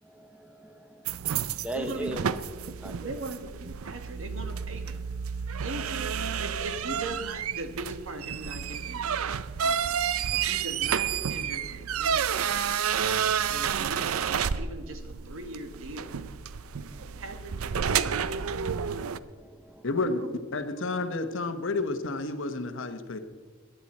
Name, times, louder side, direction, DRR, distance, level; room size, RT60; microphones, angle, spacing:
voice 1, 0.0-1.1 1.6-3.2 16.7-17.2 19.2-19.9, right 1 dB, 5° right, 8 dB, 0.9 m, -40 dB
sound 1, 1.1-19.2, right 7 dB, 90° right, 0.5 m, -30 dB
voice 2, 1.7-2.3 3.0-5.0 5.6-9.2 9.6-9.9 10.3-12.8 13.5-16.1 17.0-18.5 20.0-20.3, right 2 dB, 65° right, 7 dB, 1.4 m, -40 dB
voice 3, 19.8-20.2 20.5-23.2, left 3 dB, 65° left, 8 dB, 1.1 m, -30 dB
22.0 x 10.5 x 4.2 m, 1.5 s
head